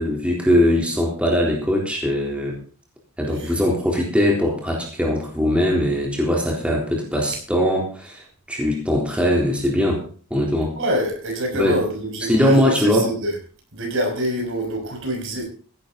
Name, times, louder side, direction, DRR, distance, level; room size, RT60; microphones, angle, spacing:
voice 1, 0.0-2.5 3.2-10.0 10.3-10.7 11.5-11.8 12.2-13.1, equal, 5° right, -1 dB, 3.7 m, -20 dB
voice 2, 10.8-13.4 13.7-15.5, equal, 60° right, 3 dB, 5.9 m, -26 dB
16.0 x 12.0 x 4.0 m, 0.42 s
head